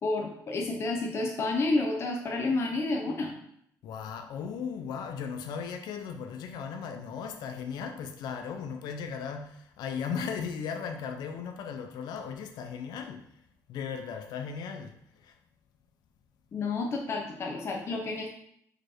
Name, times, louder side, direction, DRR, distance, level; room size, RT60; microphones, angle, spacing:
voice 1, 0.0-3.4 16.5-18.3, left 3 dB, 35° left, 0.8 m, -30 dB
voice 2, 3.8-13.4 13.7-15.4, left 6 dB, 75° left, 0.5 m, -37 dB
5.0 x 4.4 x 4.4 m
cardioid pair, 150°, 7 cm